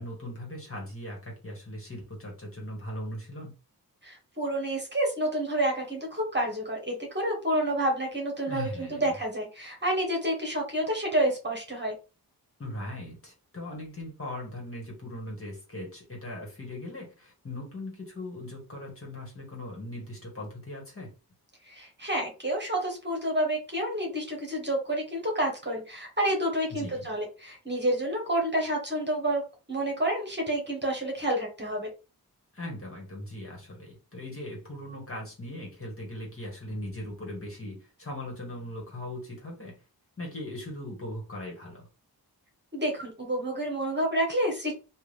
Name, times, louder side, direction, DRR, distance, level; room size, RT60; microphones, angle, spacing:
voice 1, 0.0-3.5 8.5-9.1 12.6-21.1 26.7-27.1 32.5-39.8 40.2-41.9, left 1 dB, 35° left, 1.8 m, -39 dB
voice 2, 4.0-11.9 21.7-29.4 29.7-31.9 42.7-44.7, right 1 dB, 30° right, 1.4 m, -29 dB
3.6 x 2.6 x 3.4 m
wide cardioid pair, 85°, 38 cm